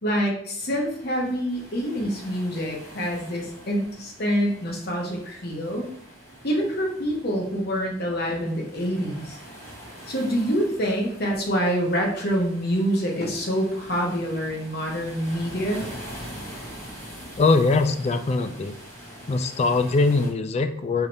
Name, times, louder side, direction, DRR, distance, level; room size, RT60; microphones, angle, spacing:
voice 1, 0.0-5.9 6.4-9.4 10.1-15.9, equal, 55° left, 0 dB, 1.0 m, -26 dB
sound 1, 0.6-20.3, equal, 15° left, 1.4 m, -44 dB
voice 2, 17.4-18.8 19.3-21.1, left 3 dB, 35° left, 8 dB, 0.3 m, -22 dB
4.9 x 3.2 x 2.7 m, 0.65 s
head